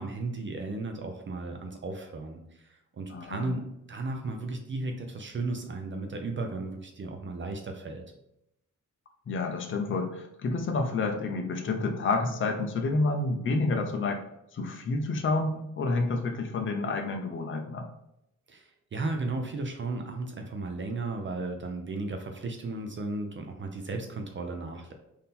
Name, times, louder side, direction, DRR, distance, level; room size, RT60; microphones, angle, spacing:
voice 1, 0.0-3.6 3.9-8.1 18.5-24.9, right 3 dB, 40° right, 4 dB, 0.5 m, -35 dB
voice 2, 3.1-3.6 9.3-14.2 14.5-17.9, left 3 dB, 40° left, 4 dB, 0.5 m, -29 dB
3.6 x 2.7 x 4.1 m, 0.82 s
wide cardioid pair, 145°, 31 cm